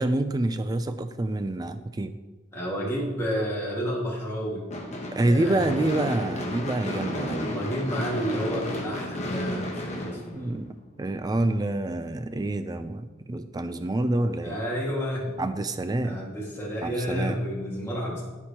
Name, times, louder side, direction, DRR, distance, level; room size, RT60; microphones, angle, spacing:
voice 1, 0.0-2.2 5.1-7.6 10.3-14.6 15.4-16.2 16.8-17.4, right 2 dB, 20° right, 10 dB, 0.3 m, -27 dB
voice 2, 2.5-4.6 5.2-5.7 7.4-10.6 14.4-15.4 16.0-18.2, equal, 15° left, -5 dB, 1.9 m, -30 dB
Gunshot gunfire / Fireworks, 4.7-11.0, left 1 dB, 35° left, 1.1 m, -33 dB
13.0 x 4.5 x 2.9 m, 1.2 s
head